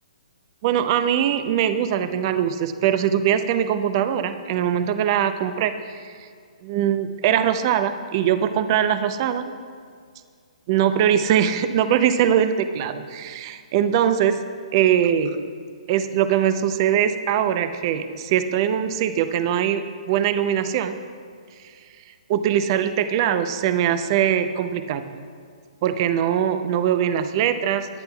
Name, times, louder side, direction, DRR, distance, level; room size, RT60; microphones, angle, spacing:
voice 1, 0.6-6.3 6.6-9.5 10.7-14.4 14.7-15.4 15.9-21.0 22.3-25.2 25.8-27.9, right 9 dB, 40° right, 10 dB, 0.6 m, -22 dB
18.5 x 9.7 x 2.3 m, 2.1 s
hypercardioid pair, 145°, 4 cm